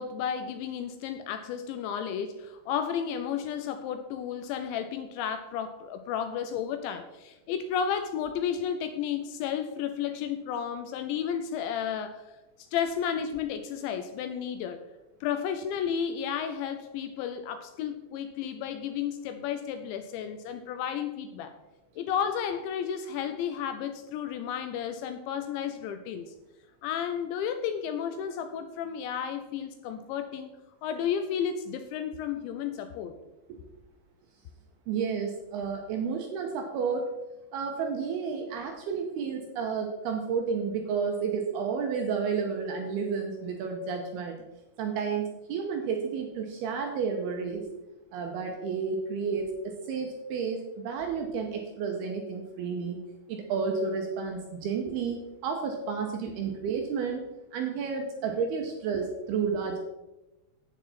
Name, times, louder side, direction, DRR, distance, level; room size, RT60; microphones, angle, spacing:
voice 1, 0.0-12.2 12.7-14.9 15.2-21.5 22.0-26.3 26.8-30.5 30.8-33.2, left 8 dB, 85° left, 9 dB, 2.6 m, -32 dB
voice 2, 34.9-37.1 37.5-44.4 44.8-47.7 48.1-53.0 53.3-57.2 57.5-59.8, right 5 dB, 90° right, 2 dB, 2.2 m, -31 dB
11.5 x 9.2 x 4.2 m, 1.0 s
omnidirectional pair, 5.9 m